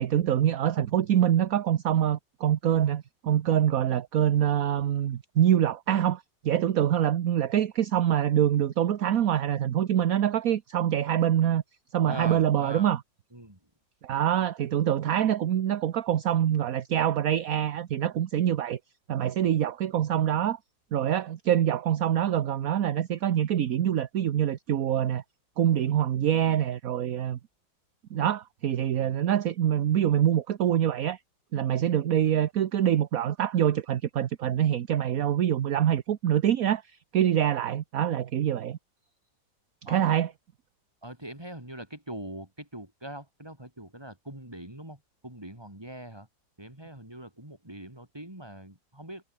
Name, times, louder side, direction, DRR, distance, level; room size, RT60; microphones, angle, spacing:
voice 1, 0.0-11.6 11.9-13.0 14.0-18.8 19.1-20.6 20.9-25.2 25.6-27.4 28.1-31.2 31.5-38.8 39.9-40.3, right 10 dB, 55° right, 1.2 m, -25 dB
voice 2, 12.0-12.9 13.3-13.6 39.8-40.2 41.0-46.3 46.6-49.2, right 1 dB, 10° right, 4.9 m, -42 dB
omnidirectional pair, 2.0 m